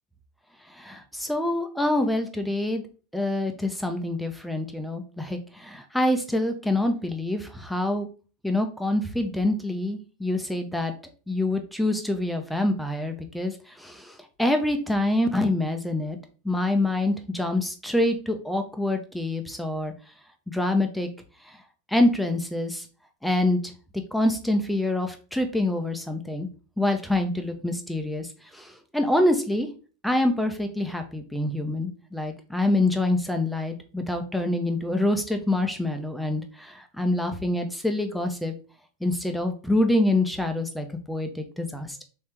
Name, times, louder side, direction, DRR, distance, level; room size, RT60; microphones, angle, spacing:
voice 1, 0.8-2.8 3.1-8.1 8.4-10.9 11.3-14.1 14.4-16.2 16.4-19.9 20.5-21.1 21.9-22.8 23.2-23.7 24.1-26.5 26.8-28.3 28.5-29.7 30.0-38.5 39.0-42.0, left 1 dB, ahead, 5 dB, 0.8 m, -26 dB
3.4 x 3.2 x 4.4 m, 0.36 s
figure-of-eight pair, 90°, 0 cm